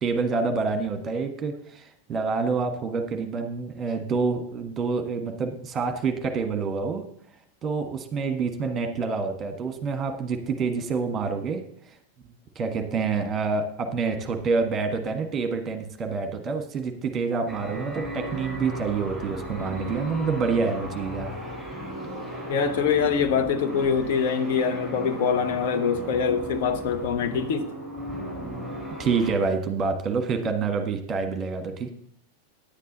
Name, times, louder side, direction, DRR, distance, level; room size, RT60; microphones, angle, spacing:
voice 1, 0.0-7.0 7.6-11.6 12.5-21.4 29.0-31.9, right 4 dB, 25° right, 7 dB, 1.4 m, -27 dB
sound 1, 17.5-29.3, equal, 10° left, 4.2 m, -35 dB
voice 2, 22.5-27.7, left 6 dB, 50° left, 7 dB, 0.9 m, -24 dB
10.0 x 8.3 x 4.0 m, 0.64 s
figure-of-eight pair, 90°, 0 cm